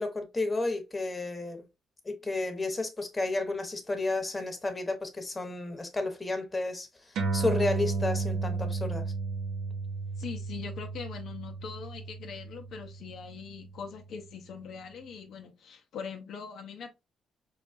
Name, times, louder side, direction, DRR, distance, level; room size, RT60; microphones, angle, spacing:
voice 1, 0.0-1.6 2.0-9.1, left 2 dB, 20° left, 0.9 m, -32 dB
sound 1, 7.2-14.0, right 4 dB, 80° right, 0.7 m, -33 dB
voice 2, 10.2-16.9, left 6 dB, 70° left, 0.5 m, -42 dB
4.9 x 2.3 x 2.5 m
cardioid pair, 90°, 0 cm